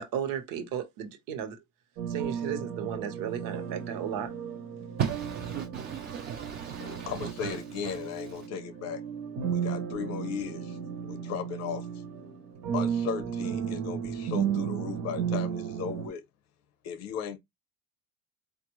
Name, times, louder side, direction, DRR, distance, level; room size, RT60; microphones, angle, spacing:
voice 1, 0.0-1.6 2.1-4.3, right 8 dB, 70° right, 1.1 m, -34 dB
sound 1, 2.0-16.1, right 8 dB, 45° right, 0.8 m, -34 dB
voice 2, 5.0-8.2, right 8 dB, 30° right, 0.4 m, -35 dB
voice 3, 6.8-9.0 9.5-10.8 11.0-11.9 12.7-16.2 16.8-17.4, left 7 dB, 45° left, 0.7 m, -36 dB
4.3 x 2.5 x 3.0 m
cardioid pair, 175°, 35 cm